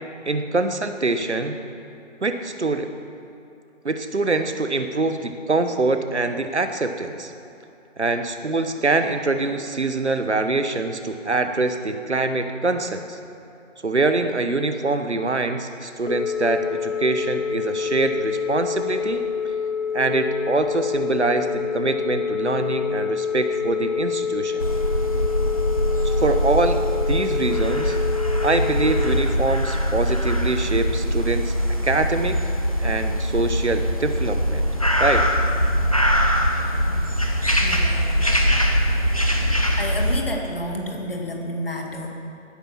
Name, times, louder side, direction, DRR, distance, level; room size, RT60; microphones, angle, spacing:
voice 1, 0.2-1.6 2.2-2.9 3.8-7.3 8.0-13.2 13.8-19.2 19.9-24.7 26.0-26.8 27.1-28.0 28.4-31.5 31.8-32.4 32.8-34.7 35.0-35.2, right 3 dB, 60° right, 8 dB, 1.1 m, -24 dB
Telephone, 16.0-29.2, left 6 dB, 85° left, 0.9 m, -27 dB
sound 1, 24.6-40.2, equal, 30° left, 0.8 m, -22 dB
voice 2, 37.6-38.0 39.8-42.1, equal, 45° left, 1 dB, 2.1 m, -30 dB
16.0 x 9.9 x 5.9 m, 2.7 s
figure-of-eight pair, 170°, 38 cm